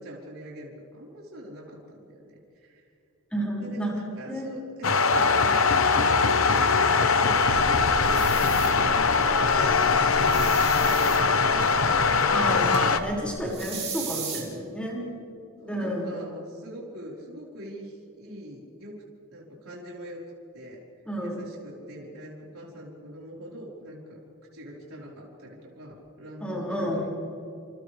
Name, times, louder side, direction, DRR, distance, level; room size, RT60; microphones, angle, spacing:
voice 1, 0.0-2.8 3.6-12.1 15.6-19.0 19.3-20.2 20.5-20.8 21.2-24.2 24.5-27.1, equal, 70° right, -4 dB, 4.7 m, -43 dB
voice 2, 3.3-4.0 4.3-4.5 12.3-15.0 15.7-16.2 21.0-21.4 26.4-27.0, equal, 5° left, -4 dB, 6.0 m, -30 dB
sound 1, 4.8-13.0, left 4 dB, 65° left, 1.1 m, -21 dB
Buzz, 7.3-13.5, equal, 25° left, 1.4 m, -41 dB
sound 2, 8.0-8.7 10.2-11.2 13.5-14.4, right 7 dB, 30° right, 3.8 m, -36 dB
29.0 x 28.0 x 3.5 m, 2.7 s
head